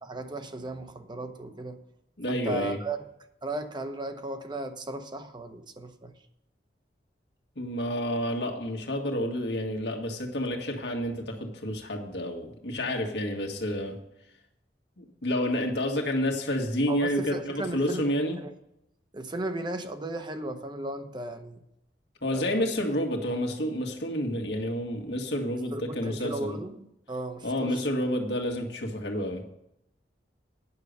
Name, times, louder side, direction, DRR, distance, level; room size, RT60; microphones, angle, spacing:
voice 1, 0.0-1.8 2.3-3.0 3.4-6.1 16.9-18.1 18.4-18.5 19.1-21.6 22.3-22.7 25.7-27.8, right 2 dB, 25° right, 0.9 m, -36 dB
voice 2, 2.2-2.8 7.5-14.0 15.0-18.4 22.2-26.6 27.4-29.4, equal, 75° left, 1.8 m, -29 dB
9.7 x 6.6 x 6.6 m
head